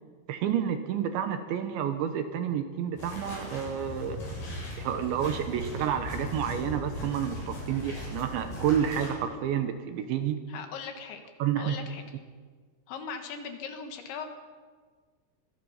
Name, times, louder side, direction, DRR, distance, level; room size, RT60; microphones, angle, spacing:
voice 1, 0.3-4.2 4.8-10.4 11.4-11.8, right 9 dB, 75° right, 7 dB, 3.2 m, -29 dB
sound 1, 3.0-9.1, left 1 dB, 40° left, 9.0 m, -38 dB
voice 2, 10.5-11.2 11.6-12.0 12.9-14.3, left 6 dB, 70° left, 6 dB, 3.7 m, -39 dB
25.5 x 21.0 x 5.7 m, 1.5 s
omnidirectional pair, 5.9 m